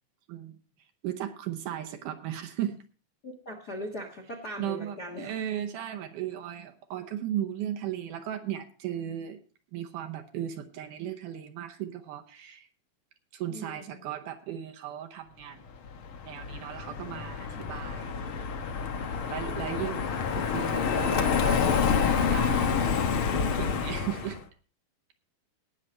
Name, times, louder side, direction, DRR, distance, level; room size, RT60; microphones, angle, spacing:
voice 1, 1.0-2.8 4.6-9.4 9.7-12.7 13.3-15.6 16.2-18.3 19.0-24.4, right 11 dB, 70° right, 6 dB, 2.2 m, -36 dB
voice 2, 3.2-5.3 13.5-14.0, equal, 50° left, 1 dB, 1.2 m, -40 dB
Car passing by, 15.9-24.4, left 6 dB, 75° left, 1.2 m, -28 dB
18.5 x 6.5 x 4.3 m, 0.40 s
omnidirectional pair, 4.2 m